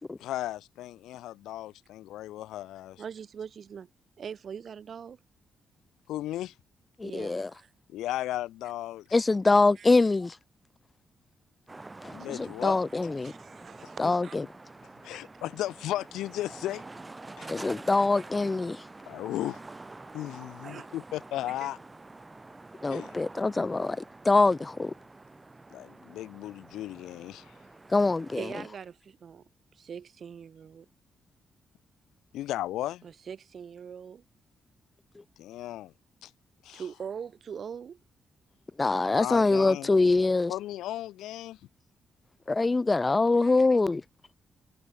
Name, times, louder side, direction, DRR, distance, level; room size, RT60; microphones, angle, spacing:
voice 1, 0.2-3.0 6.1-6.5 7.9-9.0 12.1-12.8 14.0-14.1 15.0-16.8 17.4-17.5 19.1-19.6 20.1-21.8 22.9-23.2 25.7-27.5 32.3-33.0 35.4-35.9 36.2-36.3 36.6-36.8 39.0-39.9 40.5-41.6, left 14 dB, 90° left, 1.4 m, -35 dB
voice 2, 3.0-3.9 4.2-5.2 7.0-7.7 9.8-9.9 13.2-14.4 15.1-15.3 20.6-20.9 28.4-29.4 29.8-30.9 33.0-34.2 36.7-38.0 43.4-43.5, right 7 dB, 60° right, 3.8 m, -42 dB
voice 3, 7.0-7.5 9.1-10.4 12.0-13.3 14.0-14.4 17.5-18.8 22.8-24.9 27.9-28.5 38.8-40.5 42.5-44.0, left 3 dB, 25° left, 2.6 m, -24 dB
sound 1, 11.7-28.4, right 2 dB, 25° right, 5.5 m, -47 dB
cardioid pair, 65°, 0 cm